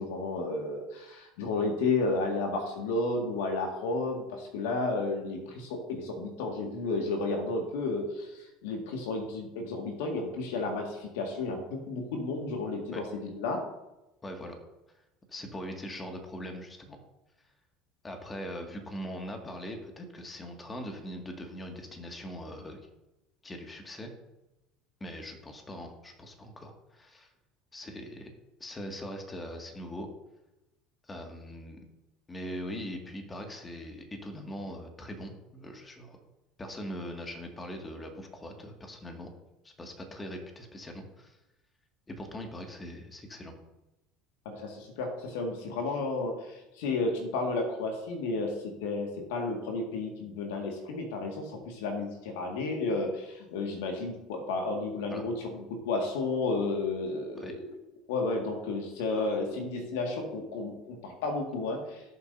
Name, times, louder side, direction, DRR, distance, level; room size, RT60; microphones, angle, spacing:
voice 1, 0.0-13.6 44.5-57.7 58.1-62.0, left 3 dB, 70° left, 2 dB, 1.8 m, -32 dB
voice 2, 14.2-14.6 15.3-17.0 18.0-22.8 23.4-24.1 25.0-27.3 27.7-28.3 28.6-30.1 31.0-31.8 32.3-36.2 36.6-39.3 39.6-41.4 42.1-43.5 55.1-55.3 57.4-57.5, equal, 20° left, 3 dB, 1.9 m, -41 dB
17.0 x 7.1 x 2.7 m, 0.98 s
hypercardioid pair, 70°, 0 cm